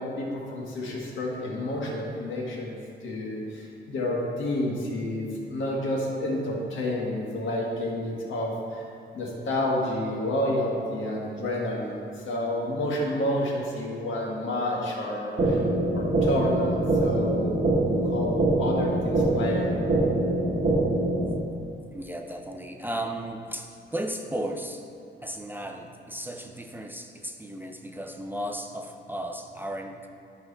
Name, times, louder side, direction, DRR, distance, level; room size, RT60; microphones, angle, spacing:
voice 1, 0.0-2.7 3.0-8.8 9.1-15.6 15.9-19.7, left 1 dB, 85° left, -3 dB, 1.6 m, -30 dB
sound 1, 15.4-21.4, right 2 dB, 40° right, 0.9 m, -24 dB
voice 2, 21.9-24.8 25.2-30.1, right 1 dB, 10° right, 3 dB, 0.3 m, -35 dB
12.0 x 4.5 x 3.3 m, 2.5 s
wide cardioid pair, 165°, 20 cm